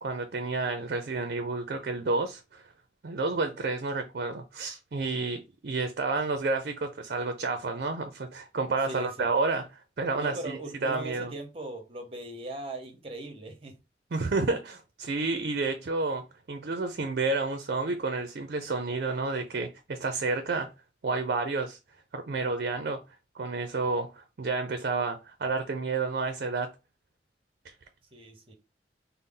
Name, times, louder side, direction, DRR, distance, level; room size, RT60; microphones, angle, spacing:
voice 1, 0.0-2.6 3.0-9.6 10.0-11.3 14.1-20.7 21.0-21.8 22.1-23.0 23.3-26.7 27.6-27.7, right 3 dB, 60° right, 0.5 m, -30 dB
voice 2, 8.9-9.3 10.2-13.8 28.1-28.5, right 2 dB, 35° right, 0.8 m, -39 dB
4.0 x 2.0 x 3.7 m
head